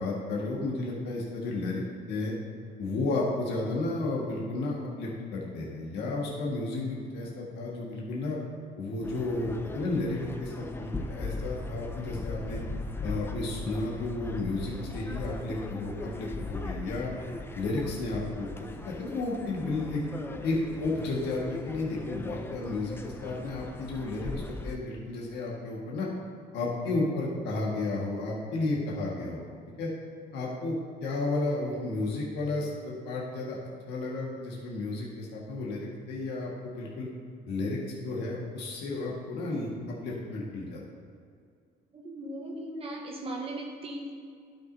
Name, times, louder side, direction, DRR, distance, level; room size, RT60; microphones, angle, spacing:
voice 1, 0.0-2.3 2.8-8.4 8.8-12.6 13.0-17.1 17.5-18.5 18.8-20.0 20.4-26.1 26.5-29.4 29.8-29.9 30.3-30.7 31.0-33.6 33.9-37.1 37.5-40.8, left 2 dB, 80° left, -4 dB, 1.6 m, -32 dB
sound 1, 9.0-24.8, left 2 dB, 15° left, 0.4 m, -39 dB
voice 2, 41.9-44.1, right 1 dB, 35° right, -1 dB, 1.0 m, -38 dB
11.5 x 6.0 x 2.7 m, 2.2 s
cardioid pair, 110°, 17 cm